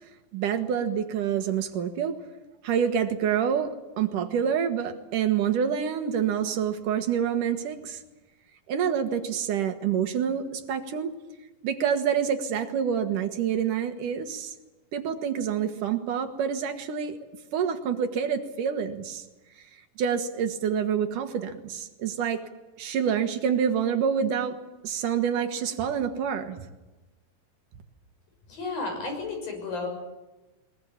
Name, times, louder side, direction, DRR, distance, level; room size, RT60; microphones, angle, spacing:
voice 1, 0.3-2.2 2.6-8.0 8.7-11.1 11.6-14.5 14.9-17.2 17.5-19.2 20.0-22.4 22.8-24.6 24.8-26.6, right 8 dB, 70° right, 7 dB, 3.0 m, -27 dB
voice 2, 28.5-29.9, left 3 dB, 80° left, 3 dB, 8.1 m, -32 dB
22.0 x 21.0 x 8.7 m, 1.1 s
omnidirectional pair, 4.0 m